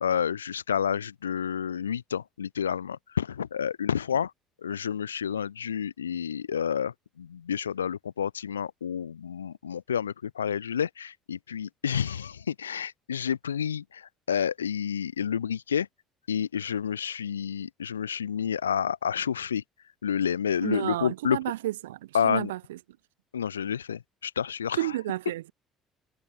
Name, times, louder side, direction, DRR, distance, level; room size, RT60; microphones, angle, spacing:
voice 1, 0.0-4.3 4.6-15.9 16.3-19.6 20.0-21.4 22.1-22.5 23.3-24.9, left 8 dB, 80° left, 0.4 m, -29 dB
voice 2, 20.6-22.8 24.7-25.5, right 15 dB, 75° right, 0.7 m, -31 dB
figure-of-eight pair, 55°, 0 cm